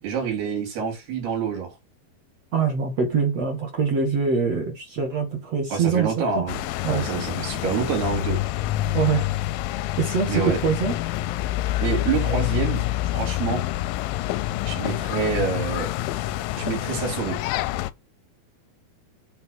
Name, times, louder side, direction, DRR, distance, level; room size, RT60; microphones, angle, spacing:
voice 1, 0.0-1.7 5.7-8.4 10.3-10.6 11.8-12.8 13.1-13.6 14.7-15.9 16.6-17.4, right 6 dB, 85° right, 5.2 m, -27 dB
voice 2, 2.5-6.5 6.8-7.0 8.9-9.3 10.0-11.0, right 6 dB, 45° right, 2.8 m, -24 dB
sound 1, 6.5-17.9, left 15 dB, 80° left, 2.1 m, -27 dB
8.1 x 4.4 x 5.6 m
omnidirectional pair, 4.5 m